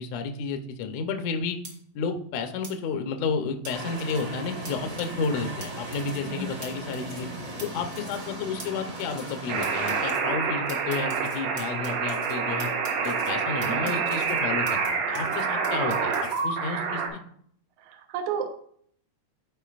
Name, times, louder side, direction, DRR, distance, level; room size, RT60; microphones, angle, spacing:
voice 1, 0.0-1.6 1.9-7.3 7.6-12.7 13.0-17.2, left 5 dB, 75° left, 6 dB, 1.6 m, -31 dB
sound 1, 1.6-1.7 2.6-2.7 3.6-4.2 4.6-4.7 5.0-5.3 5.6-5.7 5.9-6.3 6.6-6.7 6.9-7.3 7.6-7.7 7.9-8.3 8.6-8.7 9.0-9.4 9.6-10.2 10.7-12.3 12.6-13.3 13.6-14.9 15.1-16.4, right 3 dB, 55° right, 0.9 m, -43 dB
sound 2, 3.7-10.1, right 1 dB, 35° right, 1.4 m, -38 dB
sound 3, 9.5-17.1, right 5 dB, 90° right, 2.8 m, -27 dB
voice 2, 17.8-18.5, right 6 dB, 70° right, 5 dB, 2.0 m, -31 dB
13.5 x 4.7 x 2.4 m, 0.62 s
omnidirectional pair, 4.0 m